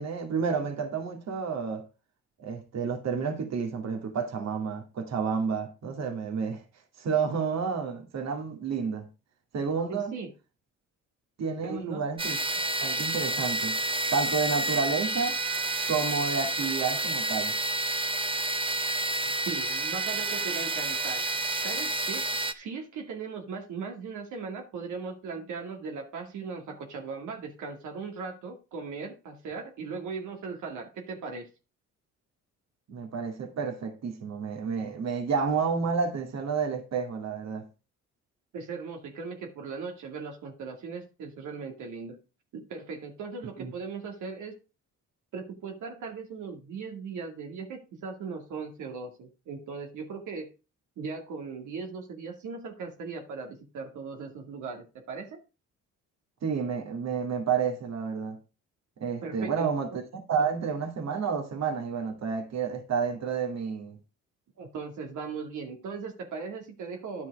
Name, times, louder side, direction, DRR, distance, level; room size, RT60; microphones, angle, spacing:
voice 1, 0.0-1.8 2.4-6.6 7.0-9.1 9.5-10.1 11.4-13.8 14.1-15.4 15.9-17.5 32.9-37.6 43.6-43.7 56.4-58.4 59.0-59.9 60.3-64.0, right 6 dB, 60° right, 2.3 m, -30 dB
voice 2, 9.9-10.3 11.6-12.0 19.3-21.2 21.6-31.5 38.5-42.2 42.5-44.5 45.3-50.5 51.0-55.4 59.2-59.7 64.6-67.3, right 5 dB, 80° right, 2.3 m, -38 dB
sound 1, 12.2-22.5, right 2 dB, 15° right, 0.8 m, -29 dB
10.5 x 6.0 x 4.7 m
cardioid pair, 90°, 30 cm